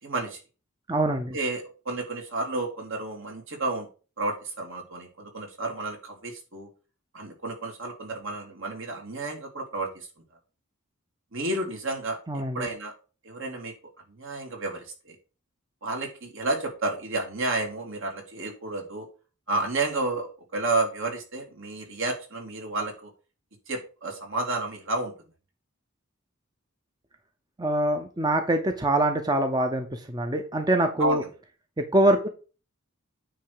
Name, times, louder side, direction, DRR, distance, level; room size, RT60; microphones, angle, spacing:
voice 1, 0.0-0.4 1.3-3.9 4.2-6.7 7.1-10.1 11.3-12.9 13.2-13.7 14.1-15.2 15.8-19.1 19.5-23.1 23.7-25.1 31.0-31.3, right 2 dB, 65° right, 1 dB, 2.6 m, -31 dB
voice 2, 0.9-1.4 12.3-12.7 27.6-31.2 31.8-32.3, right 1 dB, 20° right, 5 dB, 0.8 m, -24 dB
9.2 x 3.3 x 6.7 m, 0.35 s
head